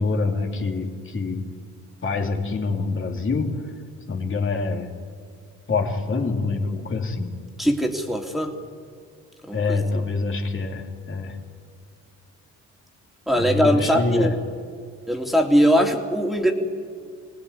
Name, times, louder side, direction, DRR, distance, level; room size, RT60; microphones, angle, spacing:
voice 1, 0.0-1.4 2.0-3.7 4.1-4.9 5.7-7.3 9.5-11.4 13.3-14.3, left 3 dB, 40° left, 2 dB, 3.2 m, -25 dB
voice 2, 7.6-8.5 9.4-9.8 13.3-14.3 15.1-16.5, equal, ahead, 1 dB, 2.9 m, -21 dB
26.0 x 19.0 x 9.8 m, 2.1 s
cardioid pair, 90°, 30 cm